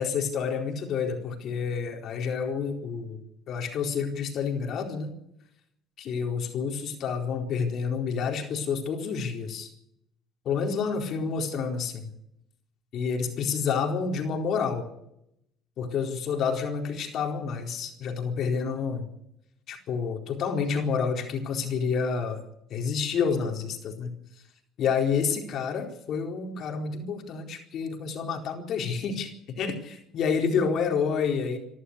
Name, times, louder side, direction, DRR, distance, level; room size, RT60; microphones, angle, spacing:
voice 1, 0.0-3.2 3.5-5.1 6.0-9.7 10.4-12.1 12.9-14.9 15.8-19.1 19.7-22.4 22.7-24.1 24.8-31.6, left 6 dB, 55° left, 3 dB, 4.4 m, -29 dB
28.0 x 12.5 x 8.4 m, 0.78 s
cardioid pair, 135°, 0 cm